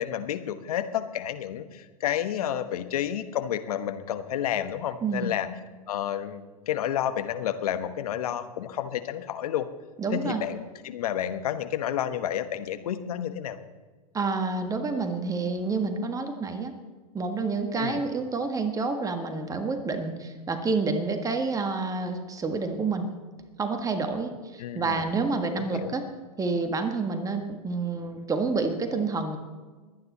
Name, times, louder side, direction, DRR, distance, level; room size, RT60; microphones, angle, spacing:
voice 1, 0.0-5.5 5.9-9.7 10.1-13.6 17.8-18.0 24.6-25.1 25.5-25.9, left 10 dB, 70° left, 10 dB, 1.2 m, -30 dB
voice 2, 5.0-5.4 10.0-10.4 14.1-16.7 17.1-23.1 23.6-26.0 26.4-29.4, right 4 dB, 15° right, 6 dB, 1.6 m, -28 dB
22.5 x 9.4 x 4.2 m, 1.4 s
hypercardioid pair, 105°, 20 cm